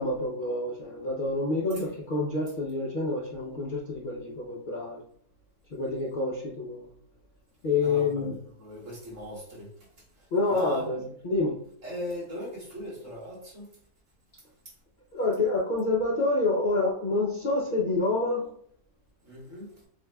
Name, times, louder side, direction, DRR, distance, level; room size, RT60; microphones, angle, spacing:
voice 1, 0.0-5.0 5.7-6.9 7.6-8.3 10.3-11.0 11.2-11.6 15.1-18.5, left 2 dB, 50° left, -3 dB, 0.6 m, -27 dB
voice 2, 7.8-11.0 11.8-13.7 14.7-14.8 19.2-19.8, equal, 50° right, -4 dB, 2.2 m, -40 dB
7.2 x 2.7 x 2.3 m, 0.63 s
omnidirectional pair, 1.6 m